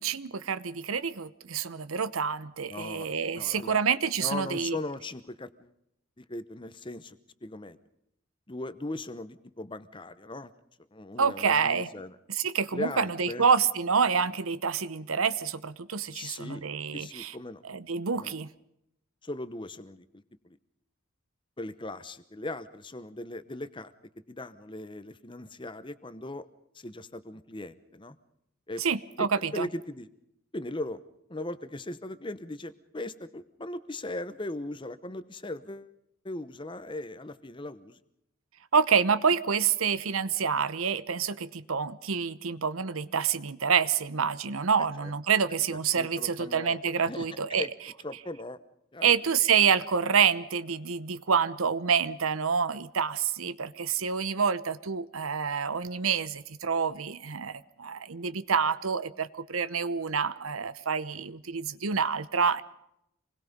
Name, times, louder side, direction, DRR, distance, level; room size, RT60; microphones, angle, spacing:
voice 1, 0.0-4.8 11.2-11.9 12.3-17.3 17.6-18.5 28.8-29.7 38.7-47.7 49.0-62.6, right 6 dB, 85° right, 15 dB, 0.9 m, -27 dB
voice 2, 2.7-3.1 3.3-3.8 4.2-5.7 6.2-7.8 8.5-10.5 10.9-12.2 12.7-13.5 16.1-16.6 16.9-17.6 18.1-18.3 19.2-20.1 20.4-20.6 21.6-23.9 24.3-26.5 26.7-28.2 28.7-28.8 29.2-30.1 30.5-31.0 31.3-35.9 36.2-38.0 45.0-45.1 45.7-47.7 48.0-48.6 48.9-49.1, left 2 dB, 25° left, 13 dB, 0.9 m, -39 dB
26.5 x 20.5 x 5.3 m, 0.78 s
head